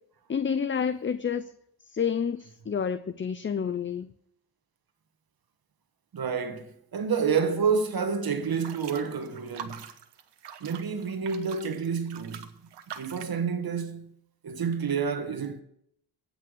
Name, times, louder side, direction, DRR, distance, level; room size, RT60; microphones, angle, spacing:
voice 1, 0.3-1.5 1.9-4.1, left 7 dB, 30° left, 0.6 m, -29 dB
voice 2, 6.1-9.8 10.6-12.5 12.9-14.2 14.4-15.6, right 6 dB, 60° right, 1.6 m, -29 dB
sound 1, 8.4-13.4, right 8 dB, 85° right, 1.1 m, -44 dB
16.5 x 6.0 x 6.3 m
cardioid pair, 85°, 41 cm